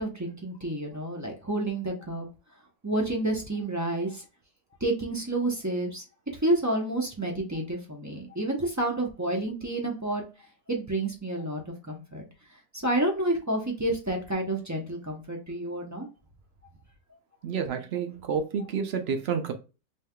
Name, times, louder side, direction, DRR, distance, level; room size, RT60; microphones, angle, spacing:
voice 1, 0.0-2.3 2.8-4.2 4.8-6.0 6.4-10.2 10.7-12.2 12.8-16.1, right 1 dB, 20° right, 0.5 m, -29 dB
voice 2, 17.4-19.5, right 6 dB, 60° right, 0.7 m, -29 dB
5.4 x 3.4 x 2.2 m
omnidirectional pair, 1.6 m